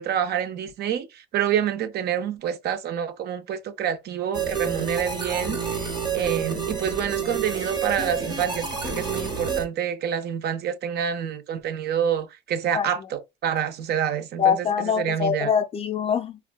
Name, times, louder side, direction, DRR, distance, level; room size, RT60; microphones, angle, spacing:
voice 1, 0.0-14.7 15.0-15.5, right 9 dB, 55° right, 0.4 m, -27 dB
sound 1, 4.3-9.6, right 6 dB, 20° right, 0.7 m, -29 dB
voice 2, 12.7-13.1 14.4-16.4, left 7 dB, 30° left, 0.4 m, -24 dB
3.5 x 2.1 x 2.2 m
cardioid pair, 135°, 20 cm